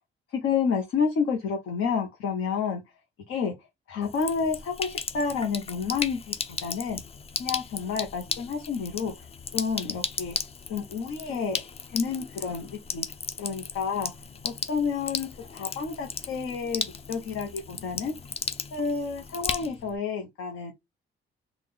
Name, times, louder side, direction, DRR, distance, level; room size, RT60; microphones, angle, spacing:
voice 1, 0.4-2.8 3.3-3.5 3.9-6.3 6.6-7.0 7.4-9.1 9.5-10.4 10.7-11.6 11.9-13.1 13.4-14.1 14.4-18.1 18.7-20.7, left 5 dB, 80° left, 1.0 m, -29 dB
Sink (filling or washing), 4.0-20.0, left 5 dB, 30° left, 0.4 m, -36 dB
3.7 x 2.4 x 3.6 m
cardioid pair, 140°, 21 cm